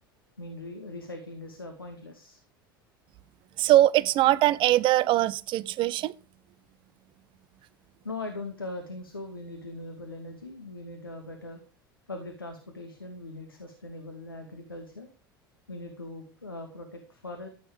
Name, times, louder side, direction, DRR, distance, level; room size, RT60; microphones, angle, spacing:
voice 1, 0.4-2.4 8.0-11.6 12.1-15.1 15.7-17.5, left 2 dB, 90° left, 2.4 m, -40 dB
voice 2, 3.6-6.1, right 14 dB, 45° right, 0.9 m, -22 dB
15.5 x 9.3 x 5.3 m
figure-of-eight pair, 75°, 12 cm